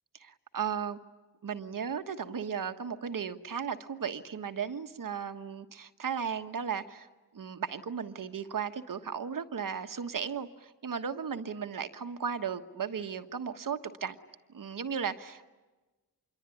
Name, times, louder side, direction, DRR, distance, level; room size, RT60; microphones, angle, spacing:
voice 1, 0.2-1.0 1.4-7.1 7.3-14.2 14.5-15.4, right 7 dB, 60° right, 1.4 m, -35 dB
26.5 x 22.5 x 10.0 m
wide cardioid pair, 95°, 37 cm